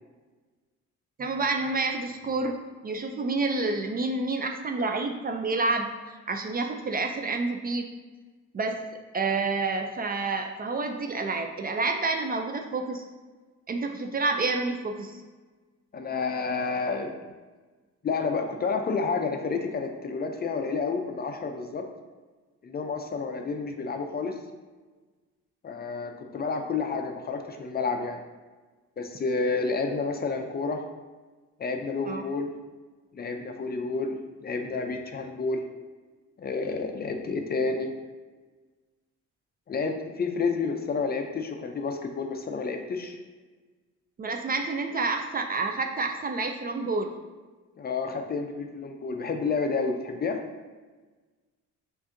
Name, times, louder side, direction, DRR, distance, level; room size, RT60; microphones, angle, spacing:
voice 1, 1.2-2.6 2.8-5.9 6.3-7.9 8.5-8.8 9.1-13.0 13.7-15.2 32.1-32.2 44.2-47.1, right 3 dB, 30° right, 4 dB, 0.4 m, -28 dB
voice 2, 15.9-17.1 18.0-21.8 22.6-24.3 25.6-28.2 29.0-30.8 31.6-32.5 33.1-35.6 36.4-37.9 39.7-43.2 47.8-50.4, left 4 dB, 35° left, 5 dB, 0.4 m, -30 dB
6.0 x 2.6 x 2.6 m, 1.3 s
cardioid pair, 90°, 30 cm